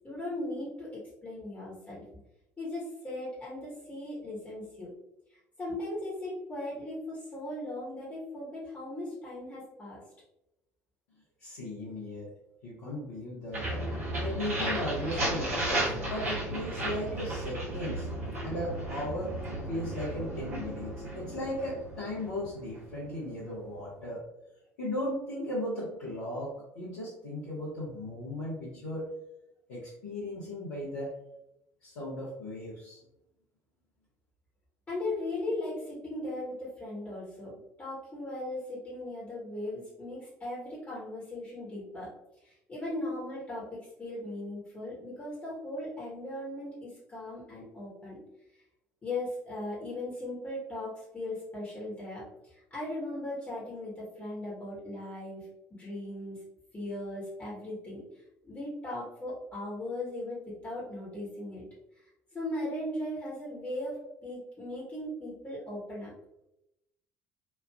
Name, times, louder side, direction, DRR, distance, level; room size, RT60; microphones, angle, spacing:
voice 1, 0.0-2.0 2.6-4.9 5.3-10.0 34.9-37.5 37.8-42.1 42.4-48.2 49.0-55.5 55.8-56.4 56.7-58.0 58.4-61.6 62.3-66.1, left 1 dB, 25° left, -7 dB, 1.0 m, -38 dB
voice 2, 11.4-12.3 12.6-13.8 14.2-18.1 18.4-19.3 19.7-24.2 24.8-26.5 26.8-29.1 29.7-31.1 31.8-33.0, left 1 dB, 65° left, -9 dB, 0.8 m, -36 dB
sound 1, 13.5-23.3, right 1 dB, 80° right, 0.8 m, -34 dB
3.2 x 2.3 x 2.3 m, 0.87 s
figure-of-eight pair, 55°, 8 cm